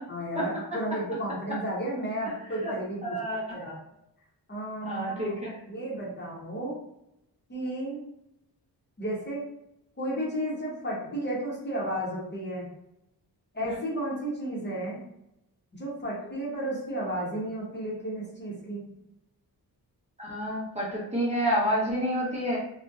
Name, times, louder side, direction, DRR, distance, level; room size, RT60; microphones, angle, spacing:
voice 1, 0.1-3.2 3.5-3.7 4.5-5.4 5.7-6.8 7.5-8.0 9.0-9.4 10.0-12.7 13.5-15.0 15.7-18.9, right 1 dB, 30° left, -5 dB, 0.7 m, -33 dB
voice 2, 3.0-3.7 4.8-5.5 20.2-22.6, equal, 20° right, -7 dB, 0.6 m, -29 dB
2.6 x 2.1 x 2.3 m, 0.84 s
wide cardioid pair, 155°, 38 cm